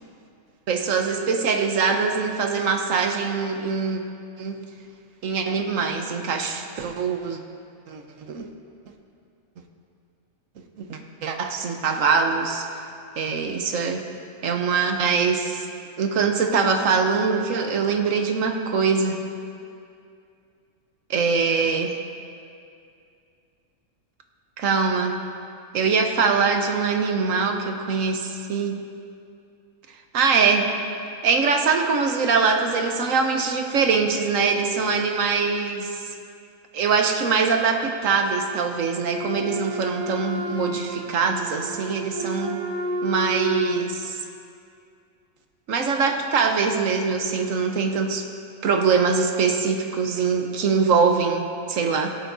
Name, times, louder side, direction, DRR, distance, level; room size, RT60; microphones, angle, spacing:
voice 1, 0.7-4.0 4.4-4.6 5.2-7.4 7.9-8.0 8.3-8.5 10.8-12.8 13.2-14.1 14.4-15.7 16.0-19.2 21.1-21.9 24.6-25.2 25.7-28.8 30.1-30.7 31.2-36.0 36.7-42.6 43.0-44.2 45.7-48.3 48.6-52.1, right 5 dB, 75° right, 4 dB, 1.3 m, -23 dB
Wind instrument woodwind instrument, 39.0-43.9, right 1 dB, 50° right, 1.5 m, -31 dB
22.0 x 8.2 x 2.7 m, 2.4 s
omnidirectional pair, 1.4 m